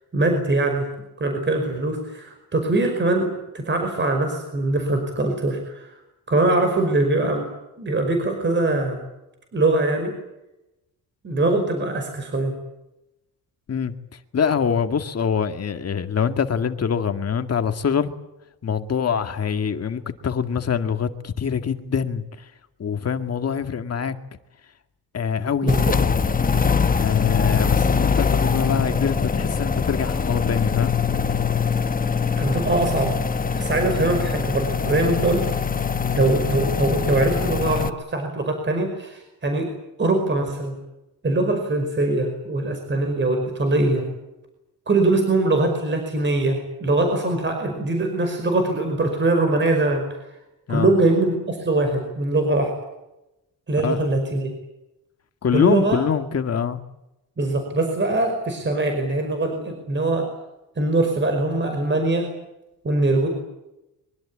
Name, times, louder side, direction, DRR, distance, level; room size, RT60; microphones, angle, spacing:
voice 1, 0.1-0.9 1.2-5.9 6.3-7.4 7.8-9.0 9.5-10.1 11.2-12.5 25.6-25.9 32.4-33.1 33.5-35.5 36.2-39.7 40.0-40.7 41.2-44.1 44.9-50.1 50.7-52.7 53.7-54.5 55.5-56.0 57.4-60.3 60.8-62.3 62.8-63.3, right 2 dB, 30° right, 5.2 m, -22 dB
voice 2, 14.3-18.1 18.6-22.2 22.8-24.2 25.1-25.8 27.0-30.9 36.0-36.2 50.7-50.9 53.8-54.1 55.4-56.8, left 7 dB, 40° left, 2.1 m, -24 dB
sound 1, 25.7-37.9, left 6 dB, 20° left, 1.0 m, -23 dB
24.0 x 23.5 x 8.7 m
cardioid pair, 155°, 38 cm